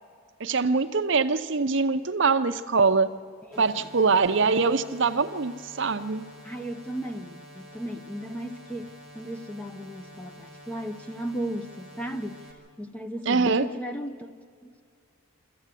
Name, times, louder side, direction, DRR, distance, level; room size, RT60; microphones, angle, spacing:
voice 1, 0.4-3.1 3.6-6.3 13.3-13.7, right 4 dB, 55° right, 0.7 m, -23 dB
sound 1, 3.5-12.5, equal, 40° left, 3.6 m, -48 dB
voice 2, 3.5-3.9 6.4-12.4 12.8-14.8, right 1 dB, 5° left, 0.6 m, -36 dB
25.0 x 14.0 x 8.3 m
head